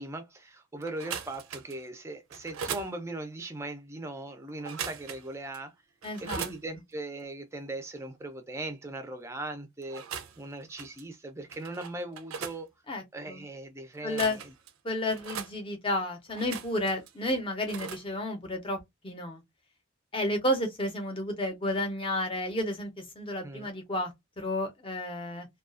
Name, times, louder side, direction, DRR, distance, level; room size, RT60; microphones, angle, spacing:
voice 1, 0.0-5.7 6.2-10.0 10.4-12.7 13.1-14.4 23.4-23.7, right 2 dB, 15° right, 0.4 m, -39 dB
sound 1, 0.8-1.8 2.3-2.9 4.6-5.3 5.5-5.6 6.0-6.6 9.8-10.4 10.8-11.0 11.5-12.6 13.9-14.7 15.1-15.5 16.3-17.1 17.7-18.0, right 7 dB, 85° right, 0.4 m, -39 dB
voice 2, 6.0-6.5 12.9-13.4 14.0-14.4 14.8-19.4 20.1-25.5, left 1 dB, 25° left, 0.6 m, -32 dB
2.3 x 2.3 x 2.4 m
head